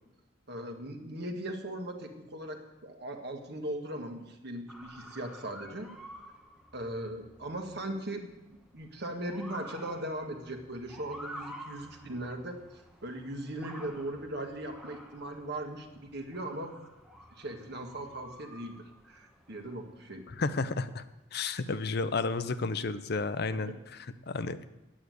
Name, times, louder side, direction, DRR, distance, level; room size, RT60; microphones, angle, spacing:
voice 1, 0.5-5.9 6.7-8.3 8.7-16.7 17.4-18.8 19.0-20.3 23.7-23.8, right 1 dB, 55° right, 4 dB, 1.7 m, -39 dB
Motor vehicle (road) / Siren, 4.7-20.2, equal, 5° right, 1.2 m, -51 dB
voice 2, 20.4-21.0 21.3-23.7 24.3-24.6, left 3 dB, 55° left, 12 dB, 0.6 m, -31 dB
8.8 x 8.4 x 9.4 m, 0.96 s
head